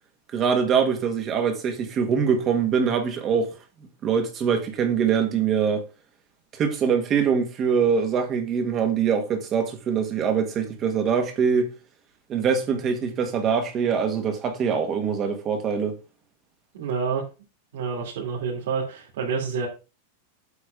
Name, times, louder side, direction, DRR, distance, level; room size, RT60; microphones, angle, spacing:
voice 1, 0.3-3.5 4.0-5.9 6.6-11.7 12.3-16.0, right 6 dB, 20° right, 1.4 m, -23 dB
voice 2, 16.7-17.2 17.7-19.7, right 5 dB, 65° right, 2.7 m, -28 dB
8.3 x 4.1 x 5.2 m
supercardioid pair, 180°, 0 cm